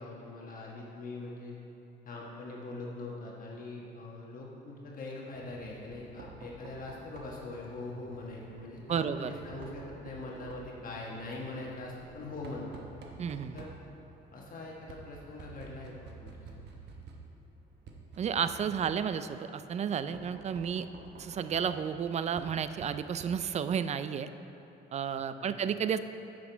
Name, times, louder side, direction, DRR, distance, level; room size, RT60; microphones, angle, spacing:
voice 1, 0.0-1.6 2.0-12.7 13.5-13.7 14.3-16.6 25.4-25.6, left 2 dB, 50° left, -3 dB, 1.3 m, -42 dB
Knock, 5.3-23.8, right 4 dB, 70° right, 1.1 m, -51 dB
voice 2, 8.9-9.3 13.2-13.6 18.2-20.9 21.2-24.3 24.9-26.0, right 7 dB, 40° right, 11 dB, 0.4 m, -32 dB
9.2 x 6.4 x 4.5 m, 3.0 s
cardioid pair, 105°, 18 cm